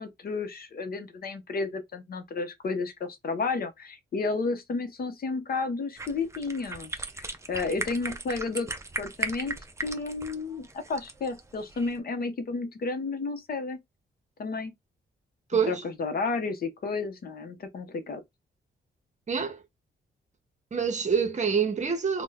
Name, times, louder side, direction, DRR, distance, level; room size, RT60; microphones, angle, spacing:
voice 1, 0.0-8.7 9.0-13.8 14.4-14.7 15.5-18.2, left 4 dB, 50° left, 0.7 m, -32 dB
sound 1, 6.0-12.0, right 2 dB, 15° right, 0.5 m, -37 dB
voice 2, 15.5-15.8 19.3-19.6 20.7-22.2, right 6 dB, 35° right, 0.8 m, -26 dB
2.7 x 2.1 x 3.7 m
wide cardioid pair, 135°, 20 cm